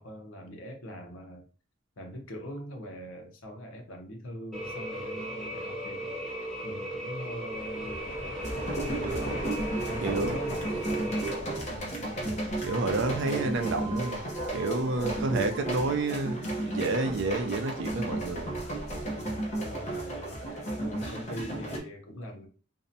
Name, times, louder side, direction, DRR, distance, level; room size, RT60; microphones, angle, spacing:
voice 1, 0.0-1.5 2.0-8.1 8.9-12.7 13.2-13.5 15.0-15.4 19.2-22.5, equal, 70° left, 3 dB, 0.7 m, -42 dB
sound 1, 4.5-11.3, right 1 dB, ahead, 1.0 m, -36 dB
sound 2, 7.5-13.2, right 1 dB, 40° right, 0.9 m, -41 dB
sound 3, 8.4-21.8, right 1 dB, 35° left, 0.7 m, -34 dB
voice 2, 10.0-10.3 12.6-14.3 14.5-18.6, right 2 dB, 65° right, 7 dB, 0.4 m, -29 dB
2.6 x 2.1 x 2.6 m, 0.40 s
head